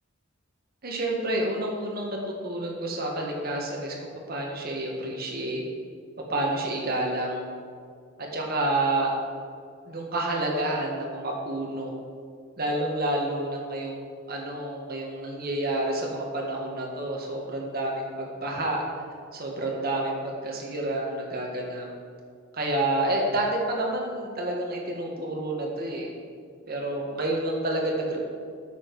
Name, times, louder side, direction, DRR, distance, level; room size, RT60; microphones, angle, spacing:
voice 1, 0.8-2.2 2.4-3.9 4.3-5.6 6.2-7.4 8.2-9.1 9.9-11.9 12.6-14.0 14.3-18.8 19.3-21.9 22.5-26.1 26.7-28.2, right 1 dB, 50° right, -1 dB, 1.7 m, -29 dB
9.5 x 7.3 x 4.8 m, 2.2 s
head